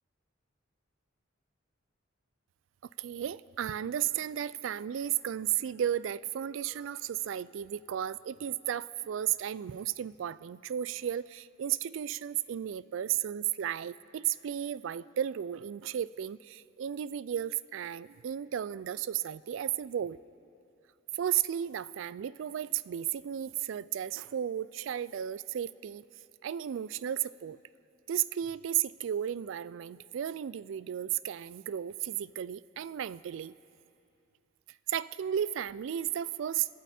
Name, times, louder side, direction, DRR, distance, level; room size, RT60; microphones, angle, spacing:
voice 1, 3.0-20.2 21.1-26.0 26.4-27.6 28.1-33.5 34.9-36.7, right 10 dB, 70° right, 19 dB, 0.3 m, -34 dB
27.0 x 12.5 x 4.3 m, 2.7 s
head